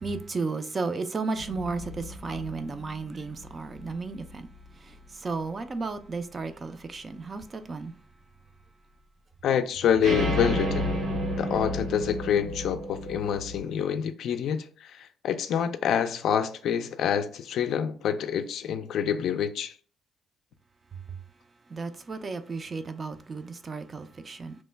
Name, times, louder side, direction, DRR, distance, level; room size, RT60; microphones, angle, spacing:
voice 1, 0.0-4.5 5.2-7.9 21.7-24.5, right 4 dB, 35° right, 0.4 m, -33 dB
sound 1, 1.4-4.3 10.0-13.6, equal, 80° right, 1.4 m, -32 dB
voice 2, 9.4-10.9 11.4-19.7, left 8 dB, 75° left, 0.3 m, -27 dB
3.0 x 2.1 x 3.3 m
cardioid pair, 90°, 0 cm